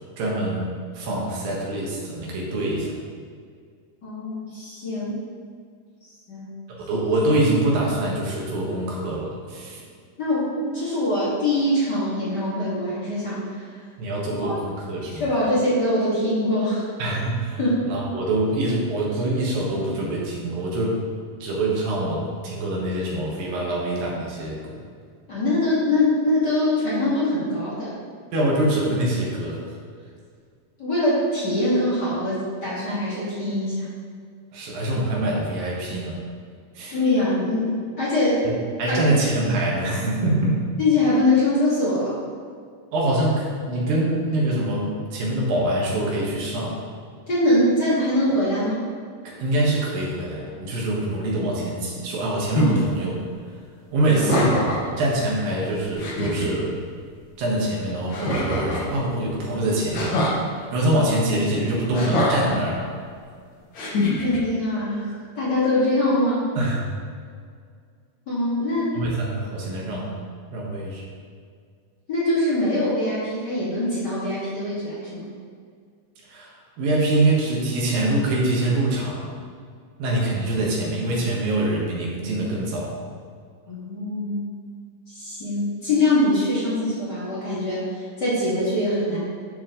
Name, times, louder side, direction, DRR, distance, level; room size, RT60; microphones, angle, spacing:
voice 1, 0.2-0.7 0.9-3.0 6.7-9.8 14.0-15.3 17.0-17.6 17.9-21.0 21.4-24.8 28.3-29.6 34.5-36.2 36.7-37.0 38.4-40.6 42.9-46.8 49.2-53.2 53.9-54.6 55.0-56.8 57.4-60.1 60.5-62.9 66.6-66.9 68.9-70.1 70.5-71.0 76.3-79.3 80.0-83.0, right 1 dB, 90° right, -3 dB, 3.2 m, -24 dB
voice 2, 4.0-5.2 6.3-6.5 10.2-13.8 14.4-14.5 15.1-16.9 17.6-17.8 25.3-28.0 30.8-33.9 36.9-37.7 38.0-38.5 38.9-39.2 40.8-42.2 47.3-48.8 64.0-66.5 68.3-69.0 72.1-75.3 83.7-84.5 85.1-89.2, left 1 dB, 35° left, -10 dB, 2.0 m, -23 dB
sound 1, 52.5-52.8 54.1-54.9 55.6-55.7 56.0-56.5 58.1-58.9 59.9-60.4 61.9-62.6 63.7-64.4, left 1 dB, 60° left, 1.2 m, -24 dB
11.5 x 4.6 x 3.7 m, 2.1 s
omnidirectional pair, 3.9 m